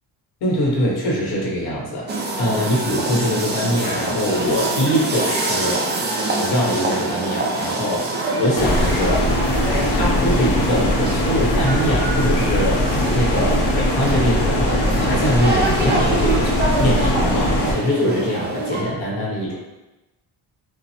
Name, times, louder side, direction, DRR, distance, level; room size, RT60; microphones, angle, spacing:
voice 1, 0.4-5.8 6.4-8.1 8.4-9.3 9.6-14.7 15.0-19.6, equal, 65° left, -3 dB, 1.2 m, -23 dB
sound 1, 2.1-18.8, right 2 dB, 25° right, 0.5 m, -25 dB
sound 2, 8.6-17.7, left 1 dB, 90° left, 1.2 m, -20 dB
5.8 x 2.0 x 3.2 m, 1.0 s
cardioid pair, 170°, 41 cm